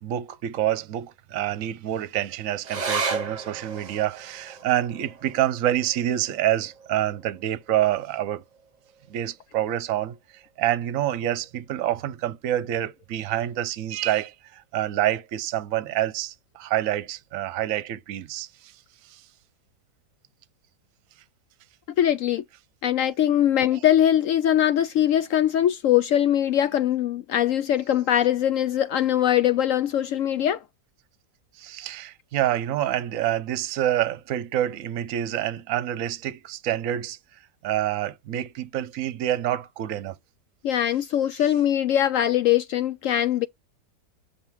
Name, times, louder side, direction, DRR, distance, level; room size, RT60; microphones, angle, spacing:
voice 1, 0.0-8.4 9.1-10.1 10.6-18.7 19.1-19.2 31.6-40.2, right 12 dB, 65° right, 1.0 m, -27 dB
sound 1, 2.6-9.4 9.7-9.8 10.2-10.8 11.4-11.5, right 4 dB, 30° right, 1.1 m, -35 dB
voice 2, 22.0-22.4 22.8-30.6 40.6-43.5, left 11 dB, 70° left, 0.8 m, -22 dB
6.9 x 3.5 x 4.6 m
omnidirectional pair, 1.7 m